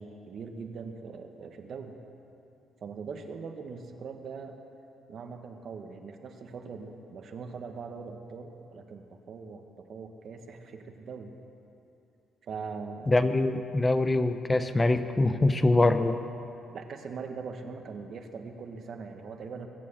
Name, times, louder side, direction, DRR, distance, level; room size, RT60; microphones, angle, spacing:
voice 1, 0.0-2.0 2.8-4.6 5.1-11.4 12.4-13.2 16.7-19.7, right 5 dB, 55° right, 5 dB, 1.3 m, -41 dB
voice 2, 13.1-16.2, left 2 dB, 20° left, 10 dB, 0.6 m, -24 dB
22.5 x 7.6 x 7.3 m, 2.9 s
cardioid pair, 105°, 0 cm